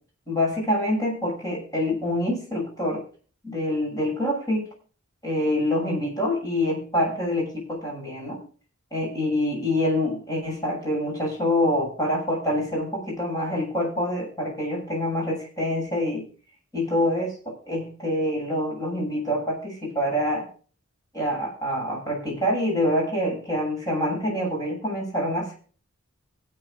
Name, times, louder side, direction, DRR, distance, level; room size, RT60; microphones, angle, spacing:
voice 1, 0.3-3.0 3.4-4.6 5.2-8.4 8.9-16.2 16.7-17.4 17.7-20.5 21.1-25.6, left 1 dB, 15° left, -2 dB, 7.0 m, -26 dB
25.0 x 8.8 x 2.4 m, 0.39 s
head